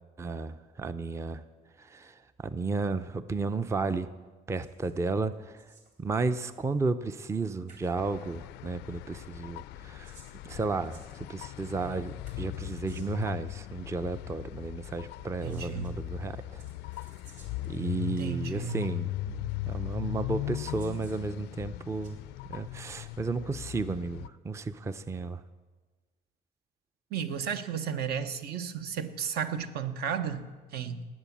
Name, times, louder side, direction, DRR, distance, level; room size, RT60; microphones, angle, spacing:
voice 1, 0.2-1.4 1.8-4.1 4.5-5.6 6.0-10.2 10.4-16.6 17.6-22.2 22.5-25.4, right 3 dB, 15° right, 12 dB, 0.5 m, -33 dB
sound 1, 4.6-5.0 5.3-6.0 7.3-7.4 7.7-8.0 9.7-11.7 12.3-13.3 15.2-15.9 16.6-17.8 18.7-18.8 19.9-20.0 20.6-21.2 21.7-22.2 22.7-23.0, right 4 dB, 45° right, 3.7 m, -58 dB
sound 2, 8.0-24.3, left 17 dB, 85° left, 0.4 m, -39 dB
voice 2, 15.4-15.9 18.0-18.8 27.1-31.1, right 7 dB, 70° right, 9 dB, 1.0 m, -34 dB
18.5 x 8.3 x 7.3 m, 1.4 s
cardioid pair, 110°, 17 cm